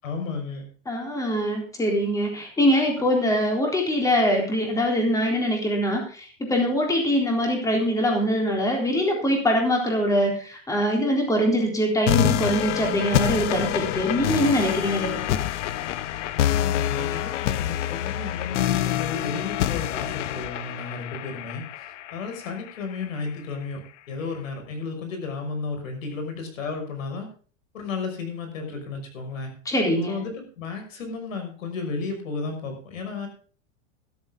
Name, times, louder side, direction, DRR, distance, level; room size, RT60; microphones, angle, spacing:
voice 1, 0.0-0.6 16.5-23.8 24.1-27.3 27.7-29.5 30.1-33.3, left 4 dB, 90° left, 5 dB, 6.0 m, -33 dB
voice 2, 0.9-15.4 29.7-30.2, equal, 10° left, 1 dB, 3.8 m, -23 dB
sound 1, 12.1-23.0, left 12 dB, 65° left, 1.0 m, -26 dB
13.5 x 12.5 x 3.8 m, 0.40 s
supercardioid pair, 150°, 39 cm